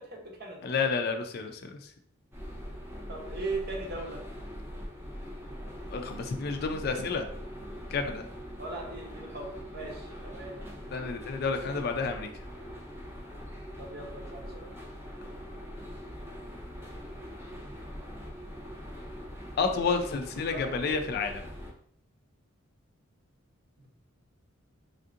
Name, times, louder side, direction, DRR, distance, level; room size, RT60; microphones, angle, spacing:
voice 1, 0.0-0.7 3.1-4.2 8.6-10.6 13.8-14.7 20.5-20.8 23.8-23.9, right 3 dB, 50° right, 0 dB, 0.7 m, -39 dB
voice 2, 0.6-1.8 5.9-7.3 7.9-8.3 10.9-12.3 19.6-21.4, left 4 dB, 50° left, 5 dB, 0.3 m, -30 dB
sound 1, 2.3-21.7, equal, 10° right, 0.5 m, -42 dB
3.5 x 2.6 x 2.5 m, 0.63 s
head